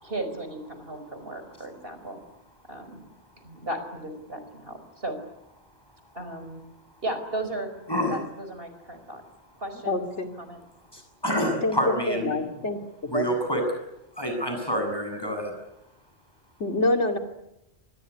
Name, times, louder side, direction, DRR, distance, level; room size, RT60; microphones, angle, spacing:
voice 1, 0.0-2.2 2.7-3.0 3.4-5.2 6.1-6.6 7.0-7.7 8.1-9.2 9.6-10.0 10.4-10.6, right 1 dB, 55° right, 8 dB, 5.1 m, -35 dB
voice 2, 7.9-8.2 10.9-12.3 13.1-13.6 14.2-15.5, equal, 20° left, 4 dB, 7.7 m, -27 dB
voice 3, 9.8-10.3 11.6-12.8 13.1-13.3 16.6-17.2, left 2 dB, 90° left, 4 dB, 3.0 m, -26 dB
25.5 x 21.0 x 9.9 m, 0.86 s
omnidirectional pair, 1.1 m